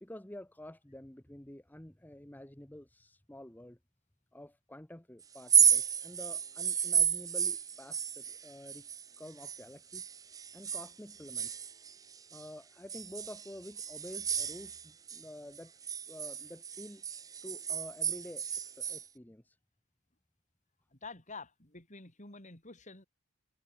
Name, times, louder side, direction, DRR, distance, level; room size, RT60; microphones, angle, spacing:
voice 1, 0.0-3.8 4.3-8.9 9.2-10.1 10.4-11.7 12.3-15.7 16.1-17.0 17.4-19.6, left 1 dB, 10° left, 0.9 m, -49 dB
sound 1, 5.4-9.6 9.9-12.5 12.9-15.2 15.5-19.0, right 8 dB, 15° right, 0.4 m, -32 dB
voice 2, 20.9-23.1, left 3 dB, 35° left, 4.4 m, -48 dB
head